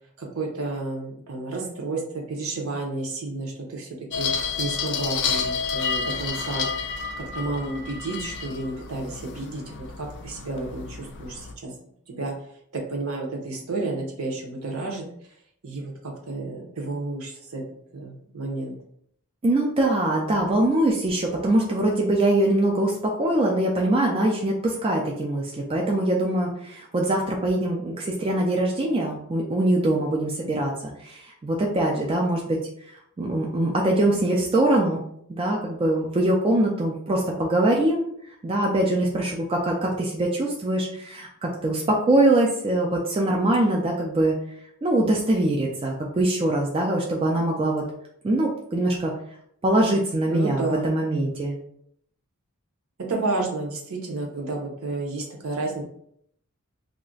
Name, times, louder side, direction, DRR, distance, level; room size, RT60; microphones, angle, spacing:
voice 1, 0.2-6.7 7.2-11.7 12.1-12.3 12.7-15.1 15.6-17.6 17.9-18.8 50.3-50.9 53.1-55.8, right 3 dB, 65° right, 1 dB, 0.7 m, -31 dB
sound 1, 4.1-11.5, left 5 dB, 50° left, 0.4 m, -30 dB
voice 2, 19.4-30.7 31.0-32.6 33.2-35.0 35.3-38.1 38.4-44.3 44.8-47.8 48.2-49.1 49.6-51.5, right 1 dB, 25° right, -1 dB, 0.4 m, -23 dB
2.4 x 2.1 x 3.7 m, 0.68 s
head